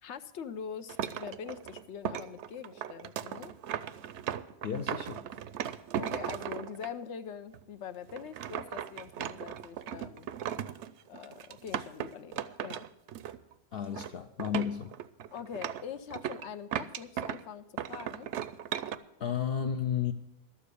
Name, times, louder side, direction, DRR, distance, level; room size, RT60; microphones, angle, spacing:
voice 1, 0.0-3.5 6.0-10.3 11.1-12.9 15.3-18.3, left 7 dB, 80° left, 1.0 m, -43 dB
sound 1, 0.9-6.9 7.5-7.6 8.1-13.5 13.8-14.1 14.4-17.4 17.8-19.0, right 10 dB, 80° right, 0.9 m, -37 dB
voice 2, 4.6-5.2 13.7-14.9 19.2-20.1, left 8 dB, 60° left, 0.8 m, -32 dB
12.5 x 7.1 x 8.2 m
omnidirectional pair, 1.2 m